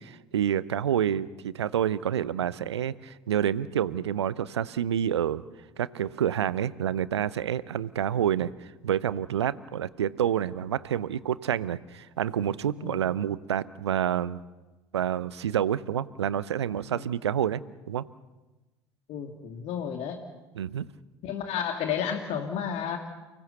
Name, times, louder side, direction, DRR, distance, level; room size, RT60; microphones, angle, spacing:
voice 1, 0.0-5.4 5.8-14.4 14.9-17.6 17.9-18.0 20.5-20.9, right 9 dB, 75° right, 18 dB, 0.8 m, -28 dB
voice 2, 19.1-20.2 21.2-23.0, left 8 dB, 50° left, 4 dB, 2.3 m, -32 dB
30.0 x 18.5 x 6.9 m, 1.1 s
figure-of-eight pair, 65°, 14 cm